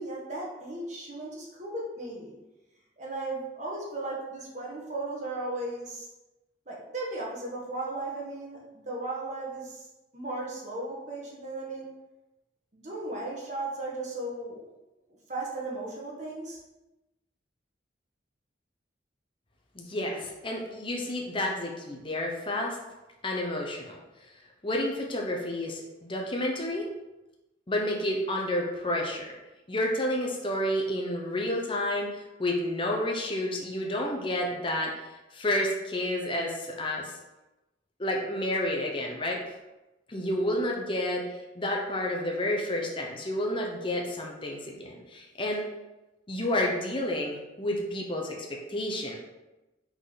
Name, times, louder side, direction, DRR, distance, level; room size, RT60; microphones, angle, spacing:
voice 1, 0.0-2.3 3.0-6.1 6.7-9.9 10.1-11.9 12.7-14.7 15.3-16.6, right 2 dB, 40° right, -3 dB, 1.4 m, -36 dB
voice 2, 19.7-22.8 23.2-24.0 24.6-26.9 27.7-29.3 29.7-32.1 32.4-34.9 35.3-37.1 38.0-39.4 40.1-41.2 41.5-45.6 46.3-49.2, left 1 dB, 25° left, -1 dB, 0.8 m, -30 dB
5.9 x 4.0 x 4.0 m, 1.0 s
head